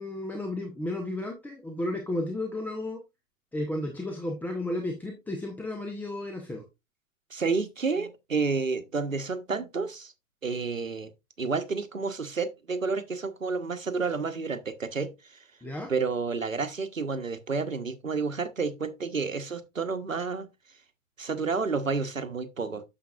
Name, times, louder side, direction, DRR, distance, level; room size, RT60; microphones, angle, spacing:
voice 1, 0.0-3.0 3.5-6.6 15.6-15.9, left 1 dB, 5° left, 0.8 m, -33 dB
voice 2, 7.3-10.1 10.4-11.1 11.4-15.4 15.9-20.5 21.2-22.8, right 4 dB, 90° right, 1.0 m, -30 dB
9.0 x 6.6 x 2.4 m
figure-of-eight pair, 105°, 39 cm